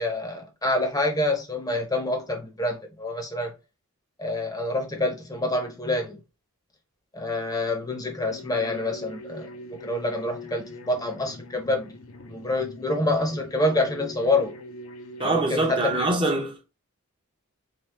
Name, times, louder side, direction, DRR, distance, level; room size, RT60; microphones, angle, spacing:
voice 1, 0.0-3.5 4.2-6.2 7.1-11.9 12.3-14.6 15.2-16.1, left 2 dB, 15° left, 0.8 m, -27 dB
sound 1, 8.2-16.1, left 1 dB, 60° left, 0.8 m, -42 dB
voice 2, 15.2-16.7, right 2 dB, 20° right, 0.8 m, -24 dB
3.7 x 3.4 x 3.4 m
head